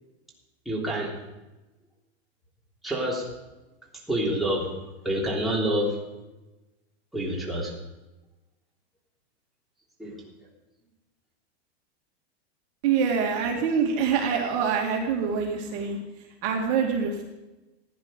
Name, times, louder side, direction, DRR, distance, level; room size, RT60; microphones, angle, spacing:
voice 1, 0.7-1.1 2.8-3.2 4.1-4.7 5.0-5.9 7.1-7.7 10.0-10.1, right 1 dB, ahead, -5 dB, 3.4 m, -27 dB
voice 2, 12.8-16.0 16.4-17.2, right 6 dB, 45° right, 0 dB, 2.3 m, -25 dB
16.0 x 10.5 x 5.3 m, 1.1 s
supercardioid pair, 145°, 33 cm